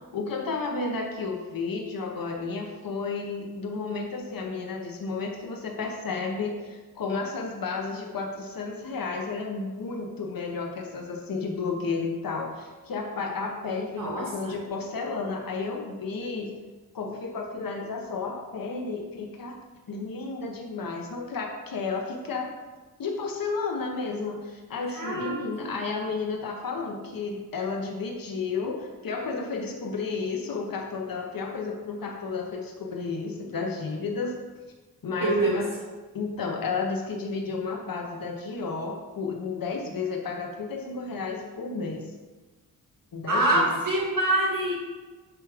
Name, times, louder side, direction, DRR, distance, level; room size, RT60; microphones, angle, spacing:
voice 1, 0.1-16.5 16.9-19.6 19.9-22.5 23.0-34.3 35.0-35.7 36.1-42.1 43.1-43.6, left 4 dB, 65° left, 2 dB, 0.8 m, -32 dB
voice 2, 14.0-14.6 24.9-25.7 35.2-35.6 43.3-44.7, right 1 dB, 60° right, -4 dB, 1.9 m, -25 dB
6.9 x 4.6 x 3.4 m, 1.3 s
wide cardioid pair, 90°, 37 cm